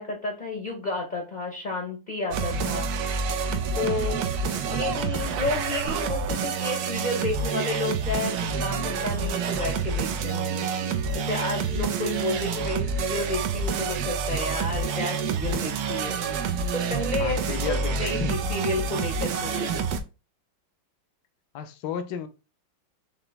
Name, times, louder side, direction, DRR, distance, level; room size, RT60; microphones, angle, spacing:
voice 1, 0.0-2.9 3.7-4.2 4.7-19.7, left 2 dB, 40° left, 0.6 m, -31 dB
sound 1, 2.3-20.0, right 5 dB, 70° right, 1.0 m, -28 dB
voice 2, 4.5-4.8 17.2-18.4 19.5-19.9 21.5-22.3, left 8 dB, 70° left, 1.1 m, -34 dB
5.0 x 3.0 x 3.3 m
omnidirectional pair, 2.1 m